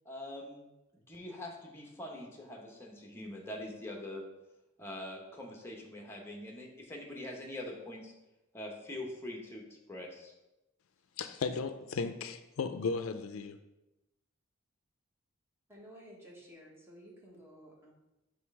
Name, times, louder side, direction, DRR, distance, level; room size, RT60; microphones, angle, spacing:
voice 1, 0.0-0.6 1.1-4.2 4.8-8.1 8.5-9.6 9.9-10.3, left 1 dB, 10° left, 0 dB, 0.9 m, -43 dB
voice 2, 11.2-13.6, left 4 dB, 80° left, 9 dB, 0.4 m, -35 dB
voice 3, 15.7-17.9, equal, 10° right, -4 dB, 1.2 m, -53 dB
6.2 x 3.2 x 4.7 m, 0.97 s
head